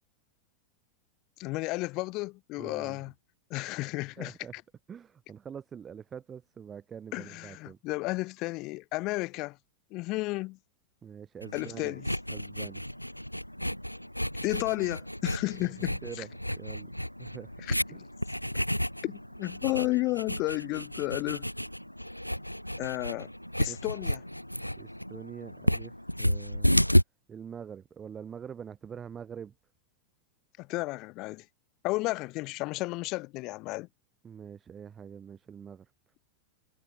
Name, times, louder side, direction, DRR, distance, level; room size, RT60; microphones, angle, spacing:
voice 1, 1.4-3.1 3.5-4.3 7.1-9.6 9.9-10.6 11.5-12.1 14.4-16.0 17.7-18.0 19.0-21.5 22.8-23.3 23.6-24.2 30.6-31.4 31.8-33.9, left 22 dB, 40° left, 0.4 m, -32 dB
voice 2, 2.6-3.0 4.2-4.5 4.9-7.8 11.0-12.0 12.3-12.9 16.0-16.3 16.6-16.9 17.2-17.5 23.7-23.8 24.8-26.7 27.3-29.5 34.2-35.9, right 7 dB, 20° right, 2.4 m, -44 dB
sound 1, 11.4-27.0, equal, 90° left, 0.8 m, -32 dB
figure-of-eight pair, 90°, 0 cm